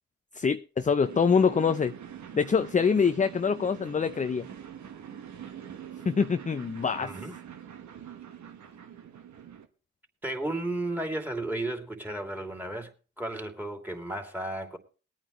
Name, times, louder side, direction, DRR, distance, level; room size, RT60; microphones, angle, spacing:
voice 1, 0.4-1.9 2.3-4.5 6.1-7.1, left 6 dB, 25° left, 0.5 m, -25 dB
sound 1, 1.0-9.7, right 9 dB, 65° right, 1.3 m, -44 dB
voice 2, 7.0-7.4 10.2-12.9 13.2-14.8, right 1 dB, 5° right, 2.8 m, -33 dB
21.0 x 9.0 x 3.2 m
hypercardioid pair, 45°, 31 cm